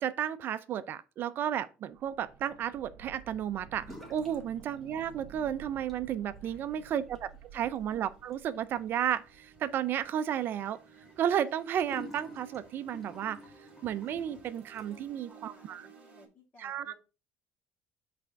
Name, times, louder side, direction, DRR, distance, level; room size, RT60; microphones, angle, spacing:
voice 1, 0.0-10.8 11.2-13.4 13.8-15.8 16.6-16.9, right 9 dB, 50° right, 0.4 m, -33 dB
sound 1, 1.9-9.7 10.0-10.1, right 7 dB, 65° right, 1.1 m, -53 dB
sound 2, 3.8-4.4 4.7-5.3 5.7-15.2, left 1 dB, 5° left, 1.6 m, -52 dB
voice 2, 6.4-6.9 14.8-16.9, left 2 dB, 35° left, 2.1 m, -60 dB
sound 3, 7.2-16.3, right 7 dB, 25° right, 1.8 m, -57 dB
5.3 x 3.4 x 5.1 m
cardioid pair, 125°, 5 cm